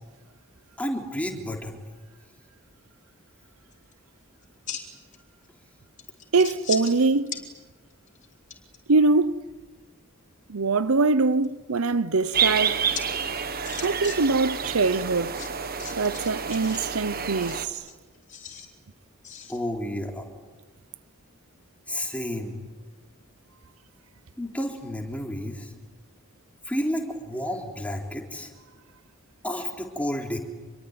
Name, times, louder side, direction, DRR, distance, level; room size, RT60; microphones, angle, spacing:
voice 1, 0.8-1.8 19.5-20.3 21.9-22.5 24.4-25.7 26.7-28.5 29.4-30.4, equal, 5° left, 3.6 m, -31 dB
sound 1, 3.7-3.9 4.4-5.2 5.4-5.5 6.0-7.0 7.3-7.4 7.9-8.8 10.9-11.5 12.9-13.0 13.3-14.2 14.4-14.5 15.3-16.8 17.3-18.7 19.2-19.6, left 8 dB, 35° left, 4.5 m, -38 dB
voice 2, 6.3-7.4 8.9-9.4 10.5-12.8 13.8-15.4 16.0-17.7, right 3 dB, 85° right, 0.8 m, -23 dB
sound 2, 12.3-17.7, right 7 dB, 45° right, 1.4 m, -29 dB
27.5 x 22.5 x 9.5 m
head